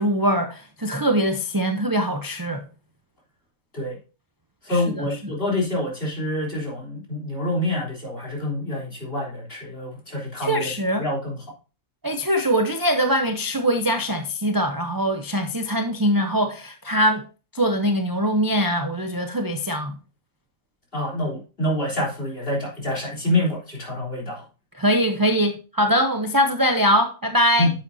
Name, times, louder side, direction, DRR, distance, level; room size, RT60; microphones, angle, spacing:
voice 1, 0.0-2.6 4.7-5.1 10.4-11.0 12.0-17.2 17.5-20.0 24.8-27.7, equal, 25° right, 0.5 m, -22 dB
voice 2, 4.6-10.7 11.0-11.4 20.9-24.4 27.6-27.7, left 1 dB, 40° left, 3.8 m, -26 dB
10.5 x 7.3 x 2.7 m
omnidirectional pair, 1.5 m